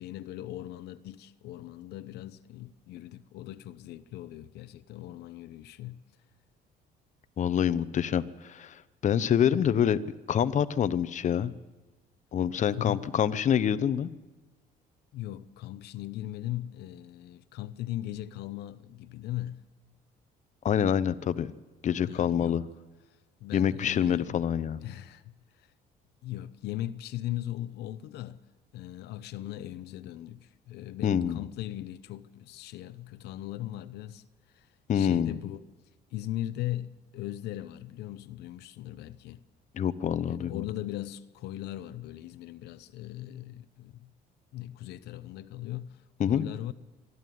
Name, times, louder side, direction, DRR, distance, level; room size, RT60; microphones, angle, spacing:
voice 1, 0.0-6.0 9.5-9.7 12.7-13.1 15.1-19.6 22.0-22.7 23.4-24.4 24.8-25.4 26.2-28.4 28.7-34.2 34.5-34.7 34.9-35.6 36.1-39.4 40.2-44.1 44.5-46.0 46.3-46.7, left 14 dB, 80° left, 0.8 m, -39 dB
voice 2, 7.4-10.0 10.3-11.5 12.3-14.1 20.6-21.5 21.8-22.6 23.5-24.8 31.0-31.4 34.9-35.4 39.7-40.6 46.2-46.5, left 9 dB, 45° left, 0.8 m, -26 dB
25.5 x 11.0 x 9.4 m
cardioid pair, 110°, 17 cm